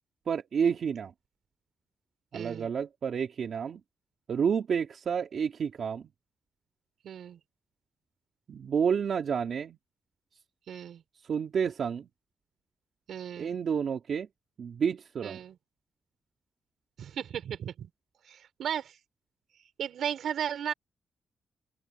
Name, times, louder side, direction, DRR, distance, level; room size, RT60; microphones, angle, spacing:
voice 1, 0.3-1.1 2.3-3.8 4.3-6.1 8.5-9.8 11.2-12.1 13.4-14.3 14.6-15.4, right 7 dB, 65° right, 2.6 m, -30 dB
voice 2, 2.3-2.7 7.0-7.4 10.7-11.0 13.1-13.6 15.2-15.6 17.0-17.9 18.3-19.0 19.8-20.7, right 9 dB, 80° right, 4.5 m, -35 dB
cardioid pair, 105°, 0 cm